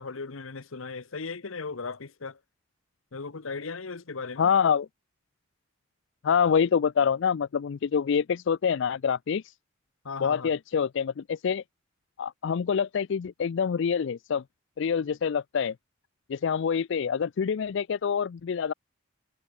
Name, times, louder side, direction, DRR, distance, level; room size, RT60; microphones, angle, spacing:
voice 1, 0.0-2.4 3.1-4.5 10.0-10.5, left 4 dB, 80° left, 1.0 m, -37 dB
voice 2, 4.4-4.9 6.2-9.5 10.2-11.6 12.2-14.4 14.8-15.7 16.3-18.7, left 7 dB, 60° left, 0.4 m, -26 dB
head